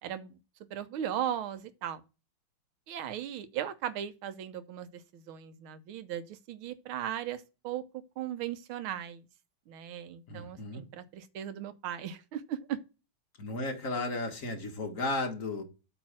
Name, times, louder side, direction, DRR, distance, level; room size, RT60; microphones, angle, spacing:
voice 1, 0.0-0.4 0.7-2.0 2.9-7.8 8.2-9.2 9.7-12.8, right 10 dB, 85° right, 1.7 m, -37 dB
voice 2, 10.3-10.8 13.4-15.6, left 2 dB, 45° left, 1.5 m, -34 dB
8.4 x 3.1 x 6.3 m
omnidirectional pair, 2.2 m